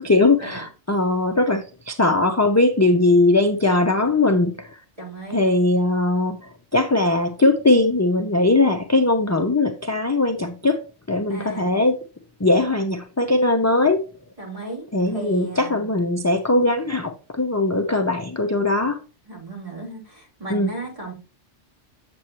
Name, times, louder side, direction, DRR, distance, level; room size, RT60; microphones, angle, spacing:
voice 1, 0.0-4.8 5.3-10.8 11.1-12.0 12.4-14.0 14.9-19.0 20.5-20.7, left 2 dB, 25° left, 0.4 m, -20 dB
voice 2, 5.0-5.4 11.3-11.7 14.4-15.9 19.3-21.1, right 2 dB, 30° right, 3.8 m, -35 dB
7.8 x 7.6 x 2.9 m
omnidirectional pair, 1.2 m